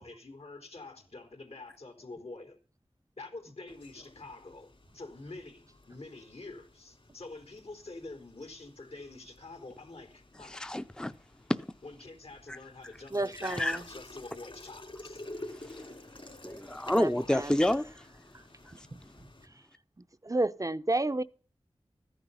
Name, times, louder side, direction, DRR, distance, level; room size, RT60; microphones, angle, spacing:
voice 1, 0.0-2.6 3.2-10.6 11.8-15.2, left 2 dB, 75° left, 3.7 m, -47 dB
sound 1, 3.7-19.5, left 2 dB, 55° left, 2.8 m, -51 dB
voice 2, 10.5-11.1 13.4-13.8 16.4-17.9, left 1 dB, 5° left, 0.6 m, -28 dB
voice 3, 13.1-13.8 16.9-17.6 20.2-21.2, right 2 dB, 35° right, 0.6 m, -31 dB
14.5 x 10.0 x 5.6 m
wide cardioid pair, 60°, 10 cm